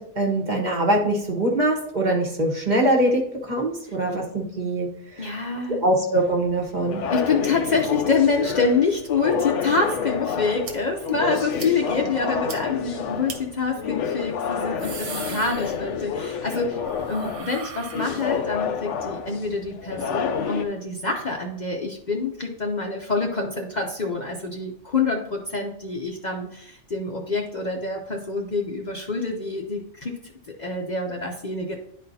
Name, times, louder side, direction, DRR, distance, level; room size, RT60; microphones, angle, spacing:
voice 1, 0.0-4.9 5.2-5.3 5.8-7.0, right 1 dB, 40° right, 0 dB, 1.2 m, -23 dB
voice 2, 5.2-5.8 7.1-30.2 30.6-31.8, left 4 dB, 45° left, 1 dB, 0.7 m, -26 dB
sound 1, 6.1-20.6, left 7 dB, 75° left, 0.9 m, -29 dB
sound 2, 10.6-10.7 11.1-11.2 11.6-11.7 12.1-12.2 12.5-12.6 13.3-13.4 14.5-16.2 16.5-18.6, right 6 dB, 80° right, 1.2 m, -38 dB
11.0 x 4.2 x 2.7 m, 0.69 s
omnidirectional pair, 1.2 m